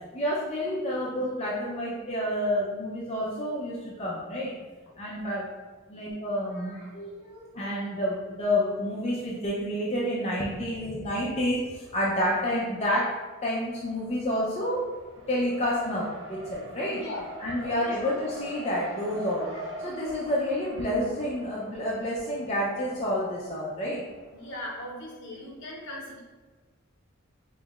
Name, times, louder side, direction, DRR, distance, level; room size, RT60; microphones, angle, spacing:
voice 1, 0.1-4.5 5.0-5.5 5.9-13.1 13.4-14.8 15.3-17.0 17.4-24.0, left 1 dB, 30° left, -6 dB, 0.5 m, -29 dB
Race car auto racing, 13.7-24.7, right 1 dB, 60° right, 0.6 m, -43 dB
voice 2, 16.9-17.3 17.6-18.2 24.3-26.2, left 1 dB, 60° left, -3 dB, 1.0 m, -39 dB
5.4 x 3.1 x 2.3 m, 1.4 s
head